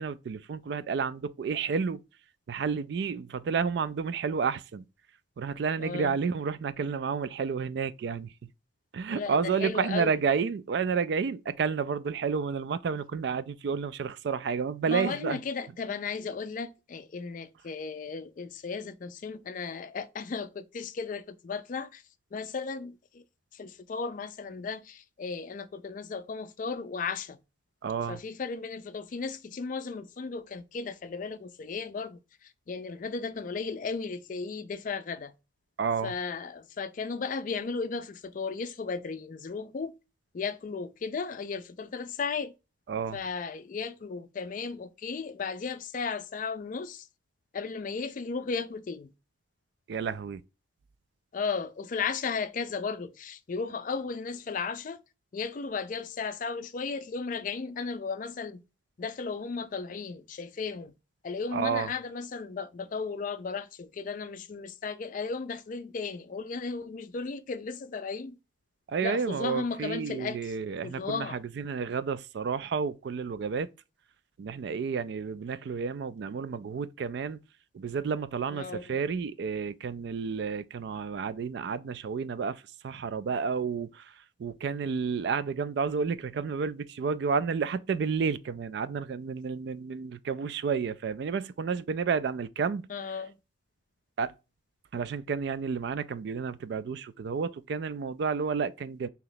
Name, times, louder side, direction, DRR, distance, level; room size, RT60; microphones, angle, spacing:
voice 1, 0.0-2.0 2.5-4.8 5.4-8.3 8.9-15.4 27.8-28.2 35.8-36.1 42.9-43.2 49.9-50.4 61.5-61.9 68.9-73.7 74.4-77.4 77.7-92.9 94.2-94.3 94.9-99.1, right 5 dB, 60° right, 0.3 m, -31 dB
voice 2, 5.8-6.1 9.1-10.2 14.9-22.0 22.3-23.2 23.5-27.4 28.1-35.3 36.0-39.9 40.3-42.5 43.1-47.1 47.5-49.1 51.3-55.0 55.3-58.6 59.0-60.9 61.2-68.4 69.0-70.5 70.8-71.4 78.5-79.0 92.9-93.3, left 5 dB, 40° left, 0.3 m, -35 dB
3.1 x 2.9 x 3.9 m
head